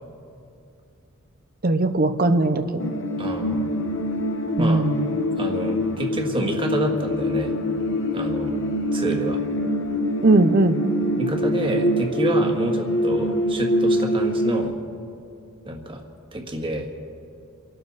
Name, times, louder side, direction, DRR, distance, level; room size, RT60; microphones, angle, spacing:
voice 1, 1.6-2.6 4.6-5.1 10.2-10.8, right 2 dB, 45° right, 9 dB, 0.7 m, -19 dB
sound 1, 2.8-14.7, equal, 60° left, 1.2 m, -24 dB
voice 2, 3.2-3.7 4.6-4.9 5.4-7.5 8.1-8.6 8.9-9.4 11.2-14.7 15.7-16.0 16.3-16.9, right 1 dB, 25° right, 2 dB, 1.7 m, -28 dB
29.5 x 12.0 x 4.1 m, 2.6 s
head